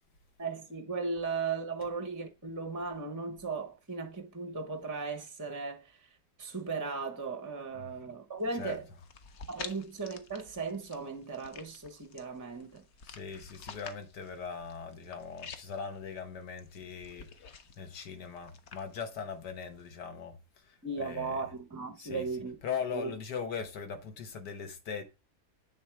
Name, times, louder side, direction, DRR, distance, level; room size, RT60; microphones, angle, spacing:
voice 1, 0.4-5.8 6.4-8.8 9.5-12.8 20.8-22.6 22.9-23.1, right 4 dB, 25° right, 0.4 m, -37 dB
sound 1, 8.4-19.9, left 6 dB, 55° left, 0.8 m, -51 dB
voice 2, 8.5-9.0 13.0-21.5 22.0-25.0, left 6 dB, 90° left, 1.8 m, -40 dB
8.0 x 3.6 x 4.6 m
omnidirectional pair, 1.7 m